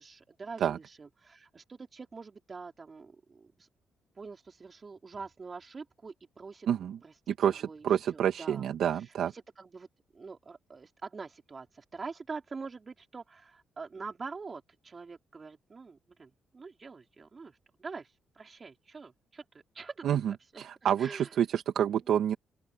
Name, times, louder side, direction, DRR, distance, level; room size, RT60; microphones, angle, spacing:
voice 1, 0.0-3.7 4.1-6.7 7.0-7.8 8.1-8.6 8.9-9.9 10.1-20.7 21.0-21.3 21.9-22.1, right 4 dB, 35° right, 4.6 m, -45 dB
voice 2, 6.7-7.0 7.4-9.3 20.0-22.3, right 9 dB, 70° right, 1.9 m, -28 dB
open air
cardioid pair, 90°, 0 cm